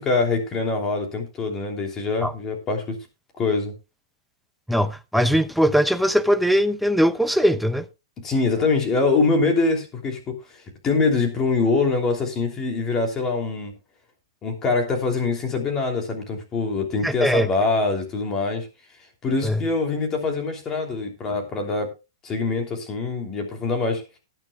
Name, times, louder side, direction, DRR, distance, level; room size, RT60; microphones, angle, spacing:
voice 1, 0.0-3.0 3.4-3.7 8.2-10.3 10.8-13.7 14.4-18.7 19.2-21.9 22.2-24.0, left 3 dB, 20° left, 3.0 m, -24 dB
voice 2, 4.7-7.9 17.0-17.5 19.4-19.6, equal, ahead, 0.6 m, -20 dB
19.0 x 9.0 x 2.4 m
hypercardioid pair, 160°, 2 cm